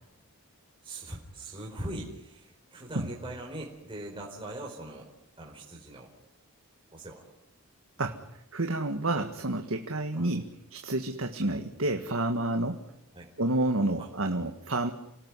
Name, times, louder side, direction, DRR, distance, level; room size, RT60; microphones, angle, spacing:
voice 1, 0.8-5.1 5.4-6.1 6.9-7.2 10.1-10.3 13.1-13.3 14.0-14.1, right 1 dB, 25° right, -2 dB, 4.5 m, -41 dB
voice 2, 8.5-12.8 13.4-14.9, right 2 dB, 65° right, 5 dB, 1.8 m, -29 dB
28.5 x 18.5 x 9.8 m, 0.87 s
head